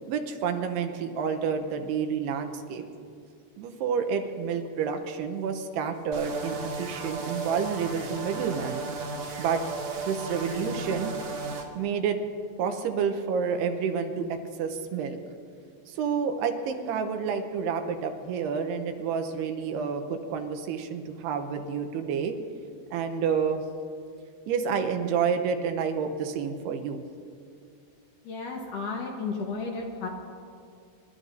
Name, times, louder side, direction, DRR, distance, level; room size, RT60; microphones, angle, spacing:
voice 1, 0.1-2.8 3.6-8.8 9.4-9.6 10.0-11.1 11.8-12.2 12.6-15.2 15.9-22.4 22.9-23.6 24.5-27.0, right 6 dB, 85° right, 6 dB, 2.9 m, -29 dB
sound 1, 6.1-11.6, right 3 dB, 60° right, 2.6 m, -35 dB
voice 2, 28.2-30.1, left 4 dB, 65° left, 0 dB, 2.5 m, -33 dB
28.0 x 12.5 x 2.7 m, 2.4 s
omnidirectional pair, 4.7 m